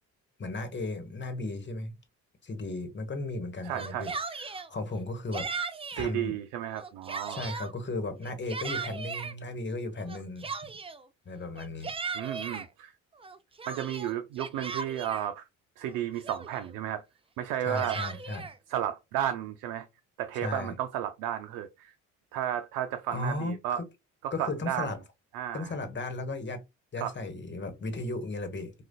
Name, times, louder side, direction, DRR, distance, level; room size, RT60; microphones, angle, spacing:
voice 1, 0.4-2.0 2.4-5.5 5.9-6.3 7.3-10.7 11.2-11.9 17.6-18.5 20.3-20.7 23.1-23.8 24.3-25.0 25.5-26.6 26.9-28.7, left 2 dB, 35° left, 1.2 m, -35 dB
voice 2, 3.6-4.1 5.9-7.5 12.1-12.9 13.7-15.5 15.8-17.0 17.4-18.1 18.7-19.9 20.2-21.9 22.3-23.8 24.2-24.9 25.3-25.7 27.0-27.1, right 11 dB, 85° right, 0.5 m, -33 dB
Yell, 3.7-4.7 5.3-6.1 6.7-7.7 8.2-9.3 10.1-11.0 11.6-12.7 13.2-15.3 15.9-16.0 16.2-16.7 17.5-18.6, right 5 dB, 15° right, 0.4 m, -37 dB
4.9 x 2.4 x 2.2 m
supercardioid pair, 80°, 32 cm